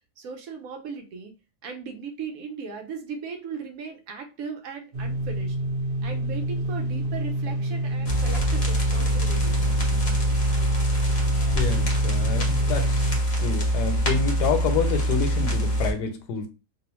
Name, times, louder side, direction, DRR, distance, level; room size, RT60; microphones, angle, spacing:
voice 1, 0.2-1.3 1.6-5.6 6.0-9.6, right 5 dB, 70° right, 1.0 m, -37 dB
sound 1, 4.9-13.2, right 1 dB, 45° right, 0.8 m, -28 dB
sound 2, 8.1-15.9, equal, 45° left, 0.6 m, -24 dB
voice 2, 11.5-13.1 13.4-16.5, left 5 dB, 85° left, 1.2 m, -28 dB
2.8 x 2.0 x 3.0 m
omnidirectional pair, 1.7 m